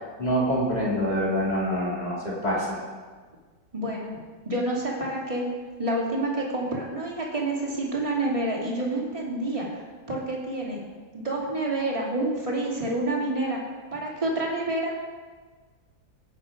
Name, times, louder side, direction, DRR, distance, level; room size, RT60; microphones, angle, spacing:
voice 1, 0.0-2.8, equal, 20° left, -5 dB, 3.4 m, -26 dB
voice 2, 3.7-4.1 4.4-5.4 5.8-9.8 10.1-10.8 11.1-13.6 13.9-14.9, right 2 dB, 20° right, -3 dB, 2.6 m, -28 dB
17.5 x 7.5 x 5.2 m, 1.5 s
omnidirectional pair, 1.9 m